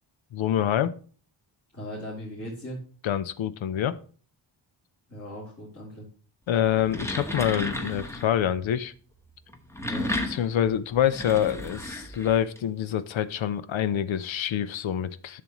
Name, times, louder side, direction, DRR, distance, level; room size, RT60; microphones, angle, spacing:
voice 1, 0.3-0.9 3.0-4.0 6.5-8.9 10.3-15.4, left 10 dB, 80° left, 14 dB, 0.7 m, -26 dB
voice 2, 1.7-2.8 5.1-6.1 9.7-10.1, equal, 30° left, -5 dB, 2.7 m, -38 dB
sound 1, 6.7-8.4 9.5-12.6, left 1 dB, 5° left, 1.0 m, -33 dB
11.0 x 6.8 x 3.0 m, 0.40 s
wide cardioid pair, 125°, 46 cm